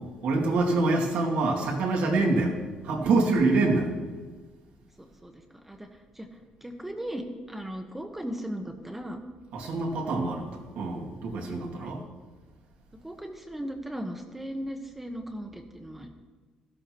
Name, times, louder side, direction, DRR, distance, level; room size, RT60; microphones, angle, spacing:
voice 1, 0.2-2.6 2.8-3.9 9.5-12.0, right 3 dB, 80° right, -1 dB, 2.3 m, -25 dB
voice 2, 5.0-5.9 6.1-6.3 6.6-9.2 11.8-11.9 13.0-16.1, equal, 10° right, 4 dB, 1.1 m, -37 dB
14.5 x 12.5 x 3.0 m, 1.4 s
cardioid pair, 100°, 2 cm